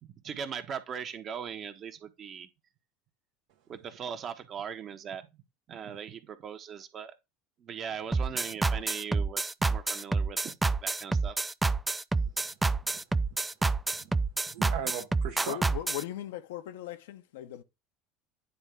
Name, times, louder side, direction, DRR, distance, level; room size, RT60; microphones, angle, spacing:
voice 1, 0.0-2.5 3.7-5.2 5.7-7.1 7.6-10.6 10.8-11.4 14.5-14.6, right 7 dB, 45° right, 1.1 m, -39 dB
sound 1, 8.1-16.0, right 3 dB, 15° right, 0.4 m, -28 dB
voice 2, 12.2-13.0 13.3-13.4 13.9-15.6, right 9 dB, 70° right, 1.1 m, -41 dB
voice 3, 15.5-17.6, left 13 dB, 75° left, 0.8 m, -38 dB
9.6 x 3.7 x 3.4 m
hypercardioid pair, 80°, 0 cm